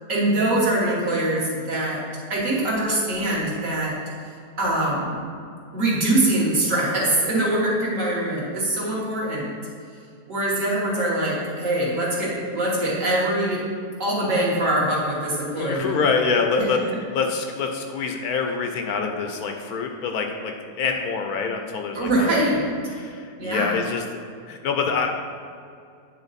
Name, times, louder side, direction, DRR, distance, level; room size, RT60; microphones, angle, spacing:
voice 1, 0.1-2.0 2.3-4.0 4.6-5.2 5.7-9.5 10.3-13.6 14.0-15.9 16.6-16.7 22.0-22.7 23.4-23.8, right 1 dB, 55° right, -6 dB, 1.9 m, -23 dB
voice 2, 15.5-16.8 17.1-22.3 22.6-24.0 24.5-25.1, left 5 dB, 75° left, 4 dB, 1.0 m, -26 dB
8.9 x 3.7 x 4.1 m, 2.4 s
omnidirectional pair, 1.7 m